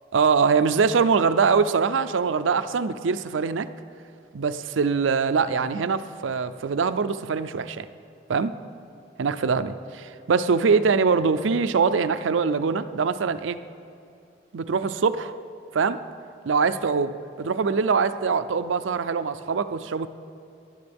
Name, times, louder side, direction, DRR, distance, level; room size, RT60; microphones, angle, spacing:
voice 1, 0.1-3.7 4.3-7.8 8.3-8.5 9.2-13.6 14.5-15.3 15.7-16.0 16.5-17.1 17.4-20.1, right 5 dB, 90° right, 12 dB, 0.5 m, -23 dB
19.0 x 11.0 x 3.5 m, 2.5 s
head